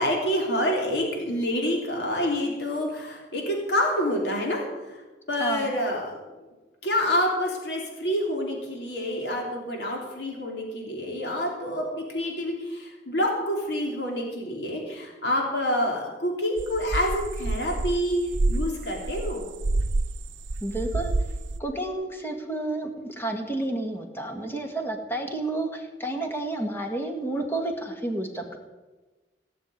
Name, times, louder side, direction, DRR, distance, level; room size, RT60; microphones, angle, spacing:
voice 1, 0.0-4.6 4.9-5.0 5.3-6.2 6.8-18.2 18.5-19.4, equal, 75° left, 0 dB, 3.3 m, -27 dB
voice 2, 5.4-5.7 20.6-21.1 21.6-28.6, right 2 dB, 15° left, 3 dB, 2.0 m, -30 dB
sound 1, 16.6-20.2 20.4-21.6, right 2 dB, 90° right, 0.7 m, -28 dB
17.5 x 6.9 x 9.4 m, 1.2 s
head